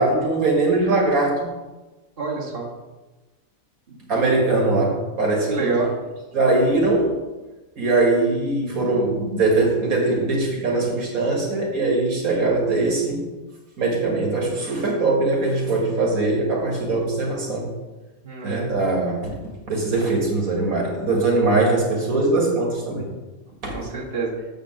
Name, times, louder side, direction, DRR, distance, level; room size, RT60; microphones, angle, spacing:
voice 1, 0.0-1.5 4.1-5.7 6.3-7.1 7.8-13.2 13.8-17.7 18.4-19.3 19.7-23.1 23.6-23.7, right 2 dB, 80° right, -1 dB, 2.2 m, -21 dB
voice 2, 2.2-2.7 3.9-4.1 5.5-5.9 18.2-18.7 23.7-24.3, right 4 dB, 40° right, -4 dB, 1.8 m, -27 dB
7.2 x 5.2 x 6.3 m, 1.2 s
omnidirectional pair, 1.5 m